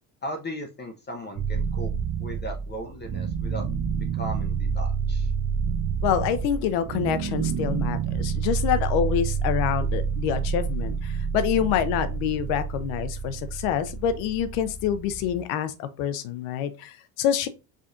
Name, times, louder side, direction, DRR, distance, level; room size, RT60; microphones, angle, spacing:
voice 1, 0.2-1.9 2.2-3.7 4.0-5.3, equal, 25° left, 0.5 m, -37 dB
sound 1, 1.4-15.4, right 6 dB, 30° right, 0.7 m, -28 dB
voice 2, 6.0-17.5, left 9 dB, 80° left, 0.6 m, -26 dB
4.9 x 2.5 x 2.5 m
supercardioid pair, 90°, 45 cm